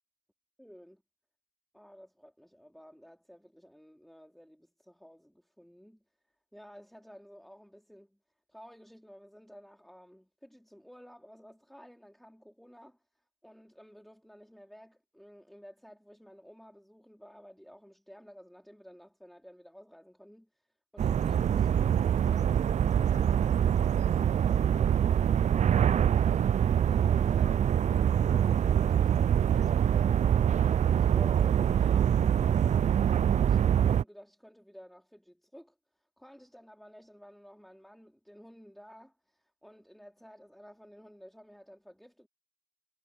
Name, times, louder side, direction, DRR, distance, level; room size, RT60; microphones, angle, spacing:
voice 1, 0.6-1.0 1.7-6.0 6.5-8.2 8.5-13.0 13.4-20.5 20.9-26.3 26.8-27.7 28.2-35.7 36.2-42.3, equal, ahead, 4.1 m, -53 dB
sound 1, 21.0-34.0, right 9 dB, 35° right, 0.4 m, -25 dB
cardioid pair, 90°, 20 cm